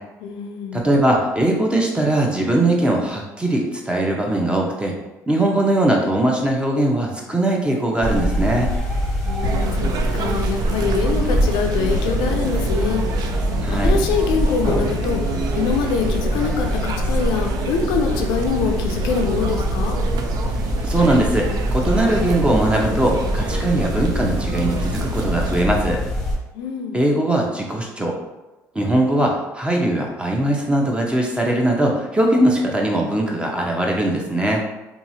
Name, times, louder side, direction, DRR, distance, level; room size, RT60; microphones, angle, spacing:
voice 1, 0.2-0.8 9.2-13.3 13.8-15.2 15.5-20.0 26.5-27.0, left 6 dB, 75° left, 3 dB, 0.4 m, -24 dB
voice 2, 0.7-4.9 5.3-8.7 13.6-14.0 20.8-26.0 26.9-28.1 28.7-34.6, right 1 dB, 15° right, 0 dB, 0.7 m, -20 dB
sound 1, 7.6-17.4 17.8-17.9 18.4-18.8 19.2-19.3, right 1 dB, 75° right, 0.9 m, -38 dB
sound 2, 8.0-26.4, equal, 5° left, 1.1 m, -23 dB
sound 3, 9.4-25.6, right 5 dB, 60° right, 0.4 m, -29 dB
2.9 x 2.4 x 2.7 m, 1.0 s
supercardioid pair, 70°, 8 cm